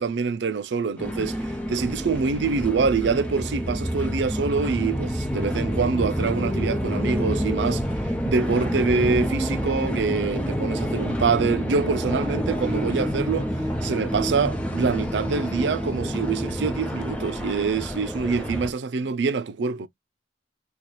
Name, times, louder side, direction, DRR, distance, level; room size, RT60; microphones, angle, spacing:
voice 1, 0.0-7.8 8.2-13.5 13.8-19.9, right 5 dB, 85° right, 0.4 m, -25 dB
sound 1, 1.0-18.7, equal, 5° left, 0.8 m, -28 dB
4.2 x 2.3 x 3.1 m
head